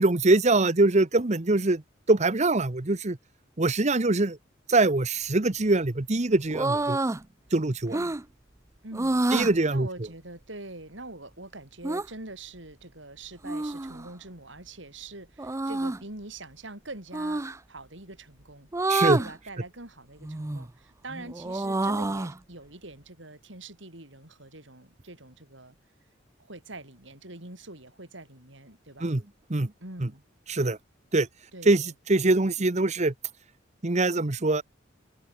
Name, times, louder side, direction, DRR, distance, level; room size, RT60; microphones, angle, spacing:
voice 1, 0.0-1.8 2.1-3.2 3.6-4.4 4.7-7.0 7.5-8.0 9.3-9.9 18.9-19.2 29.0-29.2 29.5-29.7 30.0-30.1 30.5-30.8 31.1-31.3 31.7-33.1 33.8-34.6, right 2 dB, 35° right, 1.1 m, -23 dB
sound 1, 6.5-7.2 7.9-8.2 8.9-9.5 11.8-12.1 13.4-14.1 15.4-16.0 17.1-17.6 18.7-19.3 20.2-20.7 21.1-22.4, right 2 dB, 15° right, 0.5 m, -28 dB
voice 2, 8.8-9.2 9.7-18.7 19.2-25.8 26.4-29.1 29.8-30.2 31.5-31.9, right 2 dB, 70° right, 7.5 m, -44 dB
head